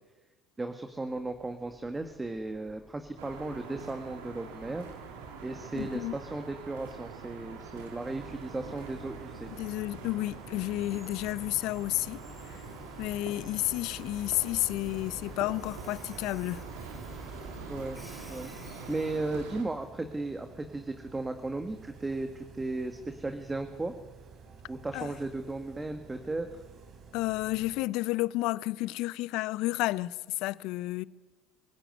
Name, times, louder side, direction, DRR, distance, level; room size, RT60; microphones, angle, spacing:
voice 1, 0.6-4.9 5.4-9.5 17.7-18.0 18.3-23.9 24.7-26.6, right 2 dB, 15° right, 1.7 m, -36 dB
Train, 0.9-19.7, left 1 dB, ahead, 2.9 m, -52 dB
sound 1, 3.2-19.6, right 5 dB, 75° right, 3.6 m, -45 dB
voice 2, 5.7-6.1 9.6-12.2 13.0-16.6 24.9-25.1 27.1-30.1 30.4-31.0, left 18 dB, 65° left, 0.7 m, -31 dB
sound 2, 8.0-27.9, right 5 dB, 50° right, 4.2 m, -51 dB
24.5 x 16.0 x 9.4 m
hypercardioid pair, 70°, 0 cm